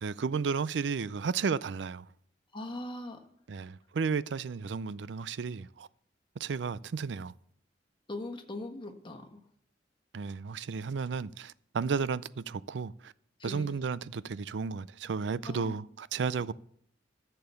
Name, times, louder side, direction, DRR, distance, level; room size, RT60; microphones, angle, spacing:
voice 1, 0.0-2.1 3.5-5.9 6.4-7.3 10.1-13.1 13.4-16.5, right 5 dB, 80° right, 0.4 m, -33 dB
voice 2, 2.5-3.2 8.1-9.2 13.4-13.7 15.5-15.8, left 2 dB, 30° left, 1.4 m, -40 dB
14.0 x 6.9 x 6.9 m
head